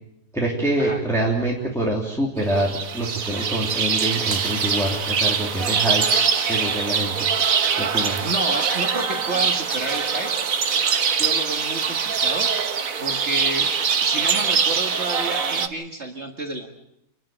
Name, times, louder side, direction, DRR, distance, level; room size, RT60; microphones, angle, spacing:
voice 1, 0.3-6.0 6.5-7.3 7.8-8.2, right 1 dB, ahead, -4 dB, 3.0 m, -25 dB
sound 1, 2.4-15.7, right 6 dB, 60° right, 1.6 m, -23 dB
voice 2, 8.2-10.3 11.2-12.5 13.0-13.7 14.0-16.7, right 2 dB, 45° right, 2 dB, 2.0 m, -30 dB
28.5 x 12.5 x 8.9 m, 0.82 s
omnidirectional pair, 1.7 m